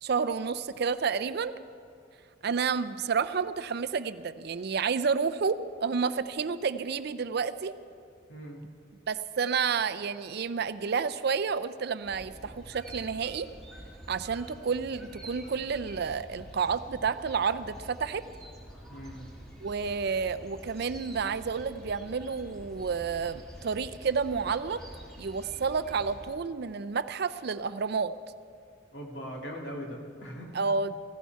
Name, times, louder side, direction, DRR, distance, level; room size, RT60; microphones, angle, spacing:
voice 1, 0.0-1.5 2.4-7.7 9.1-13.5 14.1-18.2 19.6-24.8 25.2-28.1 30.5-31.0, right 5 dB, 55° right, 13 dB, 0.4 m, -30 dB
voice 2, 8.3-8.6 18.9-19.3 28.9-30.6, equal, 65° left, -1 dB, 2.4 m, -40 dB
sound 1, 12.0-26.3, right 1 dB, 5° left, 2.1 m, -47 dB
16.0 x 15.5 x 4.7 m, 2.2 s
head